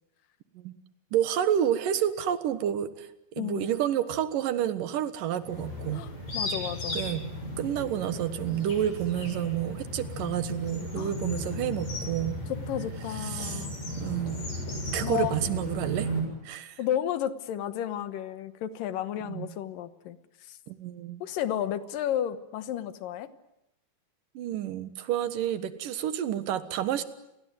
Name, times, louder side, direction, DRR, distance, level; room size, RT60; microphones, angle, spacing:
voice 1, 1.1-3.1 3.4-6.0 6.9-7.2 7.6-12.4 13.1-13.7 14.0-14.4 14.9-16.1 16.4-16.8 19.3-19.5 20.7-21.2 24.3-27.0, right 10 dB, 80° right, 12 dB, 3.0 m, -29 dB
voice 2, 3.4-3.7 5.9-7.0 11.0-11.1 12.5-13.7 15.0-15.4 16.8-20.2 20.5-20.6 21.2-23.3, left 11 dB, 80° left, 13 dB, 2.8 m, -32 dB
sound 1, 5.4-16.2, left 1 dB, 50° left, 9.0 m, -35 dB
29.5 x 20.5 x 9.4 m, 0.86 s
omnidirectional pair, 3.9 m